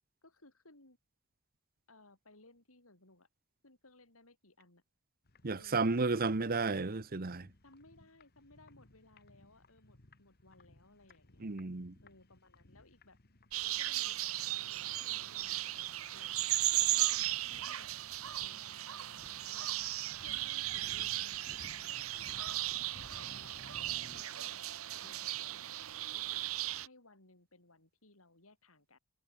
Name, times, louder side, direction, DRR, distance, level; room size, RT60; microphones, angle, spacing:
voice 1, 0.2-1.0 1.9-3.3 3.6-4.8 5.5-5.9 7.6-11.5 12.0-13.2 13.6-16.4 16.7-19.7 20.2-21.6 21.9-23.8 24.1-24.6 24.9-25.7 26.1-26.5 26.8-29.0, left 2 dB, 85° left, 7.5 m, -62 dB
sound 1, 5.3-24.2, left 1 dB, 50° left, 2.0 m, -59 dB
voice 2, 5.4-7.5 11.4-11.9, right 3 dB, 45° right, 1.0 m, -32 dB
sound 2, 13.5-26.9, right 15 dB, 80° right, 0.9 m, -36 dB
head